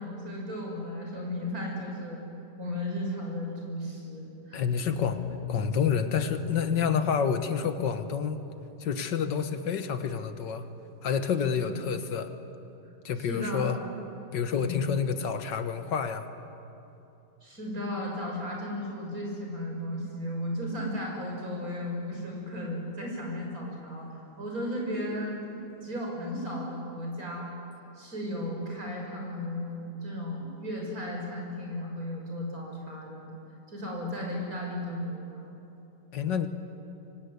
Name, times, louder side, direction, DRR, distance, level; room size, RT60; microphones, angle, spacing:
voice 1, 0.0-2.2 2.6-4.6 11.6-11.8 13.2-13.8 14.5-14.9 17.4-25.4 25.8-27.5 28.0-33.3 33.7-35.5, left 1 dB, 50° right, -1 dB, 6.7 m, -35 dB
voice 2, 4.5-5.2 5.5-8.4 8.8-10.7 11.0-12.3 13.0-13.8 14.3-16.3 36.1-36.5, left 7 dB, 85° left, 9 dB, 2.1 m, -28 dB
sound 1, 4.9-9.8, left 11 dB, 60° left, 0.4 m, -40 dB
25.0 x 24.5 x 9.8 m, 2.9 s
omnidirectional pair, 1.9 m